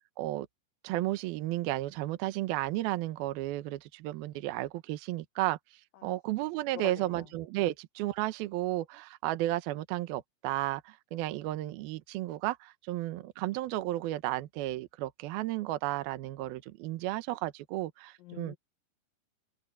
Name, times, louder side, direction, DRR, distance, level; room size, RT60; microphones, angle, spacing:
voice 1, 0.8-5.6 6.0-18.6, right 16 dB, 70° right, 2.5 m, -33 dB
voice 2, 6.7-7.2 18.2-18.6, left 12 dB, 75° left, 2.1 m, -44 dB
open air
omnidirectional pair, 5.2 m